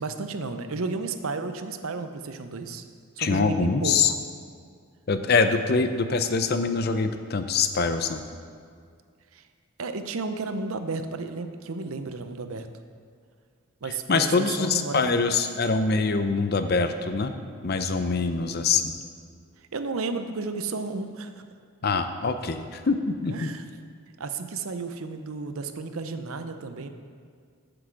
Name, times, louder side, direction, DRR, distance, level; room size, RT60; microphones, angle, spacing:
voice 1, 0.0-2.8 3.2-4.2 9.3-9.4 9.8-12.7 13.8-15.2 19.7-21.5 23.3-23.6 24.2-26.9, right 3 dB, 70° right, 8 dB, 0.6 m, -32 dB
voice 2, 3.2-4.1 5.1-8.2 14.1-17.3 17.6-19.0 21.8-23.5, left 4 dB, 45° left, 9 dB, 0.5 m, -24 dB
7.8 x 6.1 x 7.5 m, 2.1 s
head